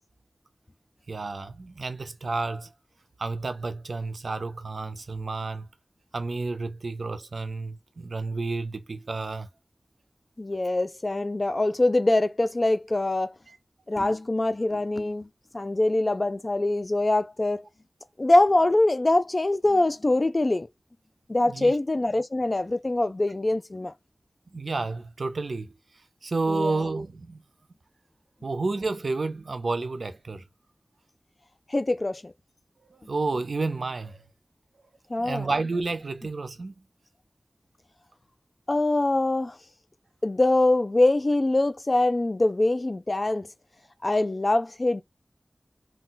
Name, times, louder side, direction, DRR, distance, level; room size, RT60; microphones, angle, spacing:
voice 1, 1.1-2.7 3.2-5.7 6.1-9.5 13.5-13.6 21.5-21.8 24.5-25.7 26.2-27.4 28.4-30.4 32.9-34.2 35.2-36.7, right 3 dB, 85° right, 0.4 m, -30 dB
voice 2, 10.4-13.3 13.9-15.3 15.5-17.7 18.2-20.7 21.3-23.9 26.5-26.9 31.7-32.3 35.1-35.5 38.7-39.6 40.2-43.5 44.0-45.0, left 2 dB, 45° left, 0.4 m, -23 dB
2.3 x 2.2 x 3.8 m
wide cardioid pair, 45°, 0 cm